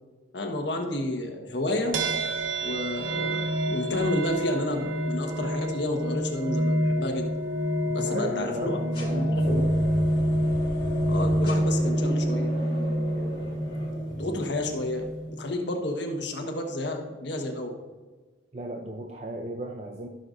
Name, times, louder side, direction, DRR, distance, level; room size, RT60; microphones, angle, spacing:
voice 1, 0.3-2.0 2.6-7.3 7.9-8.8 9.1-9.6 11.1-12.5 13.1-13.3 14.1-17.7, left 1 dB, 75° left, 3 dB, 1.4 m, -31 dB
sound 1, 1.9-15.5, right 1 dB, 90° right, 0.9 m, -27 dB
voice 2, 7.8-9.8 18.5-20.1, right 1 dB, 35° right, 3 dB, 0.5 m, -35 dB
sound 2, 8.9-14.9, equal, 30° left, 2.7 m, -35 dB
15.0 x 6.7 x 2.6 m, 1.3 s
head